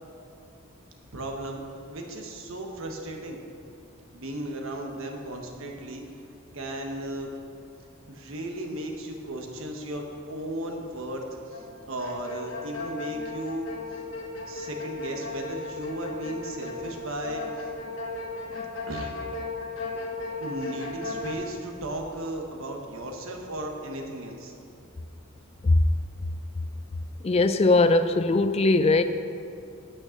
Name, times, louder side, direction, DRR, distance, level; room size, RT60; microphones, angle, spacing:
voice 1, 1.1-1.6 1.9-3.4 4.1-6.0 6.5-7.3 8.1-11.2 11.5-13.7 14.5-17.7 18.9-19.1 20.4-24.5, right 1 dB, 65° right, 2 dB, 1.2 m, -35 dB
sound 1, 11.5-11.7 12.0-21.3, left 3 dB, 65° left, 1.2 m, -36 dB
voice 2, 27.2-29.0, left 2 dB, 30° left, 10 dB, 0.3 m, -20 dB
9.0 x 6.4 x 6.4 m, 2.6 s
head